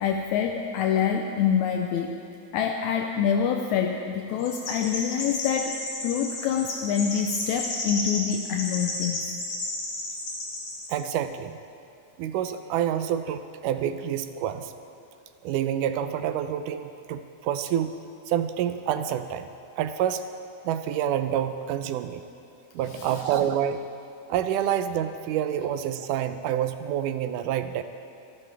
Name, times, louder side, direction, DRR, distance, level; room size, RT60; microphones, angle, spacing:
voice 1, 0.0-2.2 2.5-5.7 6.0-9.3 22.9-23.2, left 8 dB, 80° left, 3 dB, 1.9 m, -26 dB
Chirp tweet, 4.4-10.9, left 2 dB, 60° left, 3.6 m, -33 dB
voice 2, 10.9-11.6 12.2-14.7 15.4-18.0 18.3-19.5 19.8-20.2 20.6-22.2 22.8-23.8 24.3-27.8, right 10 dB, 85° right, 10 dB, 2.2 m, -27 dB
26.5 x 12.0 x 3.4 m, 2.6 s
omnidirectional pair, 3.6 m